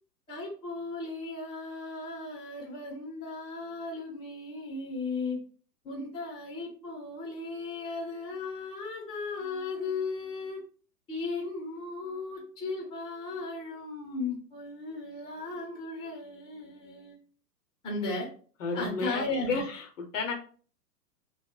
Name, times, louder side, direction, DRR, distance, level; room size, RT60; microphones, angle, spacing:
voice 1, 0.3-5.4 5.8-10.6 11.1-17.2 17.8-18.3 18.7-19.7, left 3 dB, 10° left, 0.7 m, -36 dB
voice 2, 18.6-20.3, left 4 dB, 50° left, 0.7 m, -32 dB
2.2 x 2.1 x 3.7 m
figure-of-eight pair, 115°, 49 cm